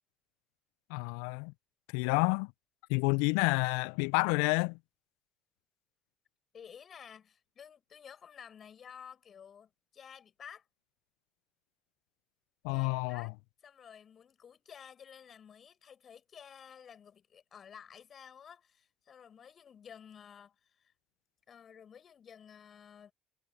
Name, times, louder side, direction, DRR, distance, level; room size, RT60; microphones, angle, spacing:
voice 1, 0.9-1.5 1.9-2.5 2.9-4.8 12.6-13.3, left 32 dB, 70° left, 1.0 m, -29 dB
voice 2, 6.5-10.6 12.7-13.3 13.6-20.9 21.5-23.1, left 8 dB, 45° left, 7.1 m, -53 dB
figure-of-eight pair, 55°, 0 cm